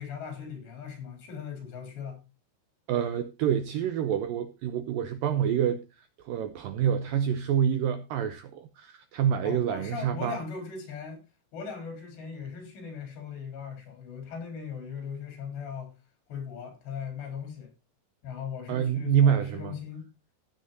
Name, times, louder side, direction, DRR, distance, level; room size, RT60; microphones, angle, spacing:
voice 1, 0.0-2.2 9.4-11.2 11.5-15.9 16.3-17.7 18.2-20.1, left 6 dB, 80° left, 6.2 m, -38 dB
voice 2, 2.9-10.4 18.7-19.8, right 9 dB, 80° right, 2.0 m, -27 dB
15.5 x 9.5 x 2.7 m
omnidirectional pair, 4.9 m